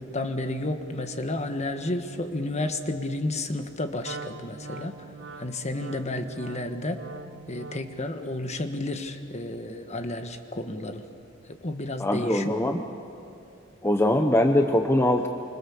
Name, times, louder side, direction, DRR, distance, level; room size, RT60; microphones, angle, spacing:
voice 1, 0.0-4.9 5.4-7.0 7.5-11.0 11.5-12.5, left 2 dB, 35° left, 7 dB, 1.4 m, -31 dB
Wind instrument woodwind instrument, 4.0-8.1, right 3 dB, 65° right, 1.7 m, -42 dB
voice 2, 12.0-12.8 13.8-15.3, left 1 dB, 15° left, 4 dB, 0.8 m, -22 dB
25.5 x 25.0 x 7.2 m, 2.7 s
head